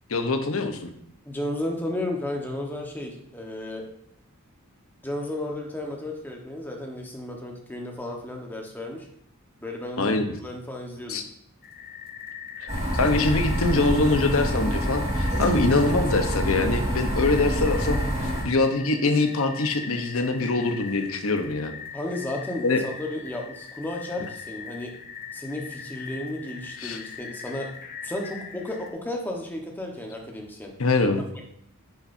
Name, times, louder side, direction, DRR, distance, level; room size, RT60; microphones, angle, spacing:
voice 1, 0.1-0.9 10.0-10.3 11.1-11.2 12.6-21.7 22.6-22.8 26.8-27.0 30.8-31.2, left 3 dB, 70° left, 6 dB, 1.0 m, -24 dB
voice 2, 1.2-3.8 5.0-9.1 9.6-11.2 21.9-24.9 25.3-27.7 28.0-30.7, left 1 dB, 10° left, 1 dB, 1.2 m, -33 dB
sound 1, 11.6-28.9, left 7 dB, 40° left, 0.9 m, -41 dB
sound 2, 12.7-18.4, equal, 35° right, 3.6 m, -26 dB
9.8 x 7.2 x 2.7 m, 0.70 s
head